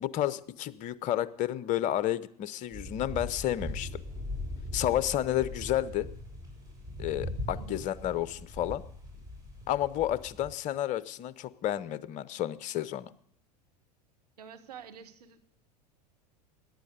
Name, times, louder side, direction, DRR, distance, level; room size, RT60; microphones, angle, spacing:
voice 1, 0.0-4.0 4.7-6.1 7.0-8.8 9.7-13.1, left 12 dB, 35° left, 18 dB, 0.8 m, -31 dB
sound 1, 2.7-10.5, left 1 dB, 15° right, 7.2 m, -40 dB
voice 2, 7.5-7.8 14.4-15.4, right 7 dB, 70° right, 7 dB, 1.7 m, -48 dB
17.5 x 11.0 x 6.7 m, 0.66 s
figure-of-eight pair, 85°, 21 cm